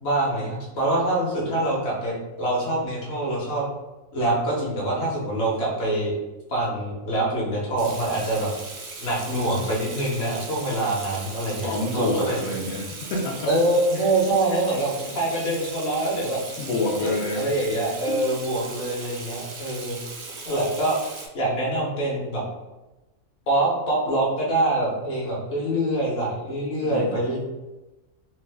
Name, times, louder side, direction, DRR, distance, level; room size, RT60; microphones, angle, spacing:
voice 1, 0.0-3.7 4.1-6.2 6.5-8.5 9.0-12.4 13.4-16.4 17.0-20.0 20.4-21.0 21.3-22.4 23.5-27.4, right 1 dB, 55° left, -4 dB, 1.1 m, -25 dB
Water tap faucet / Sink (filling or washing), 7.8-21.3, right 3 dB, 80° right, 0.4 m, -38 dB
voice 2, 11.6-13.5 13.9-14.1 16.6-17.5 26.8-27.2, left 2 dB, 85° left, -1 dB, 1.0 m, -28 dB
3.1 x 2.1 x 3.3 m, 1.1 s
omnidirectional pair, 1.4 m